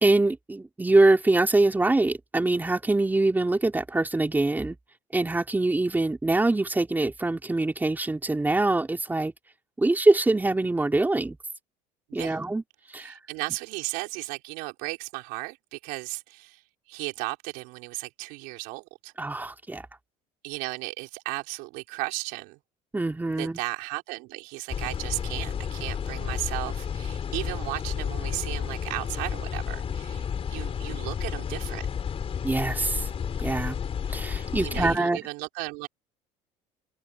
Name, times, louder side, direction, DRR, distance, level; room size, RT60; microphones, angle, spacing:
voice 1, 0.0-4.8 5.1-9.3 9.8-11.4 12.1-12.6 12.9-13.1 19.2-19.8 22.9-23.6 32.4-33.1 33.4-33.8 34.1-35.3, right 2 dB, 10° right, 3.0 m, -24 dB
voice 2, 13.0-16.6 16.9-19.1 20.4-22.6 23.3-31.8 34.6-35.9, right 26 dB, 80° right, 5.2 m, -35 dB
sound 1, 24.7-35.0, left 7 dB, 40° left, 4.2 m, -31 dB
supercardioid pair, 95°, 15 cm